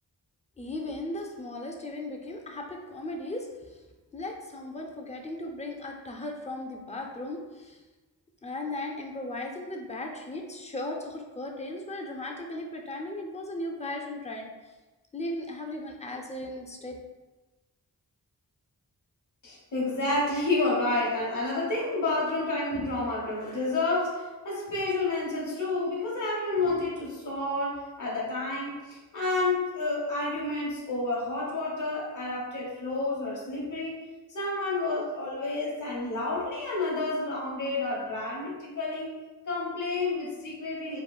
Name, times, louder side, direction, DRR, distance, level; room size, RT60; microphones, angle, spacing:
voice 1, 0.6-3.8 4.1-7.8 8.4-14.5 15.1-17.0, left 1 dB, 20° left, 1 dB, 0.4 m, -37 dB
voice 2, 19.4-34.0 34.3-39.2 39.5-41.0, left 2 dB, 50° left, -4 dB, 1.0 m, -30 dB
3.6 x 2.4 x 2.3 m, 1.2 s
wide cardioid pair, 55°, 39 cm